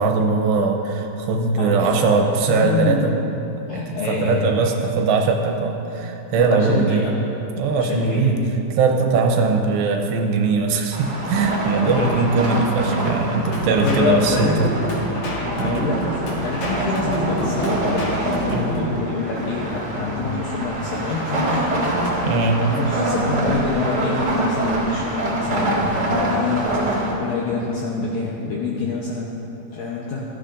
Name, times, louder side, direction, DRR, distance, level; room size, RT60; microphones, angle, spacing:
voice 1, 0.0-3.1 3.7-7.0 7.6-8.4 8.7-14.7 15.6-15.8 18.5-18.7 22.2-22.6, right 4 dB, 80° right, 3 dB, 2.9 m, -20 dB
voice 2, 1.6-2.2 2.5-3.1 3.7-4.7 6.3-7.2 7.7-8.3 11.8-12.2 13.6-14.7 15.3-16.1 16.4-21.8 22.2-29.3 29.7-30.3, left 4 dB, 80° left, -3 dB, 2.0 m, -26 dB
sound 1, 10.9-27.1, right 1 dB, 50° right, 1.2 m, -25 dB
sound 2, 13.5-19.0, right 1 dB, 55° left, 2.9 m, -27 dB
16.5 x 12.5 x 2.6 m, 3.0 s
omnidirectional pair, 5.1 m